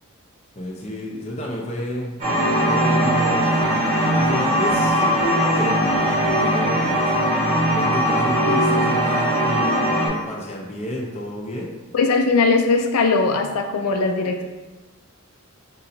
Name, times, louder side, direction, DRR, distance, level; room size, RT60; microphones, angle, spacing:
voice 1, 0.5-2.4 2.7-7.1 7.7-11.7, left 1 dB, 30° left, -2 dB, 0.7 m, -30 dB
sound 1, 2.2-10.1, equal, 35° right, 1.5 m, -20 dB
voice 2, 11.9-14.4, left 4 dB, 90° left, 5 dB, 0.4 m, -19 dB
3.9 x 2.7 x 4.2 m, 1.2 s
head